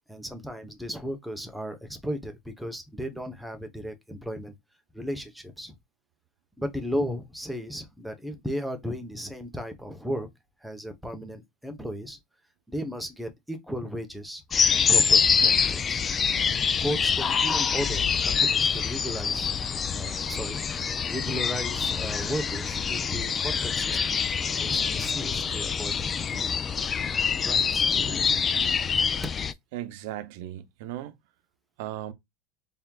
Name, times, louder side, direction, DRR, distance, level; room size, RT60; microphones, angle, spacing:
voice 1, 0.1-4.6 4.9-5.8 6.6-10.3 10.6-12.2 12.7-14.4 14.7-16.1 16.8-20.6 21.1-24.2 24.6-26.6 27.4-28.5, equal, ahead, 0.9 m, -35 dB
sound 1, 14.5-29.5, left 6 dB, 25° left, 0.3 m, -25 dB
voice 2, 29.7-31.1 31.8-32.1, right 13 dB, 75° right, 0.6 m, -36 dB
4.2 x 3.5 x 2.3 m
supercardioid pair, 130°, 0 cm